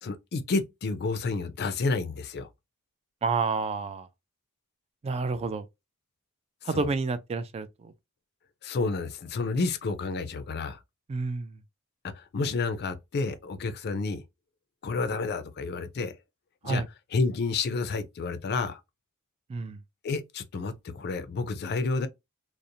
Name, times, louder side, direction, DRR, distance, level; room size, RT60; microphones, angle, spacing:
voice 1, 0.0-2.5 6.7-6.9 8.6-10.8 12.1-14.2 14.8-16.1 16.6-16.8 17.1-18.8 20.0-22.1, left 3 dB, 50° left, 0.4 m, -30 dB
voice 2, 3.2-4.1 5.0-5.6 6.6-7.9 11.1-11.6 16.6-16.9 19.5-19.8, right 4 dB, 30° right, 0.3 m, -29 dB
2.5 x 2.0 x 2.6 m
head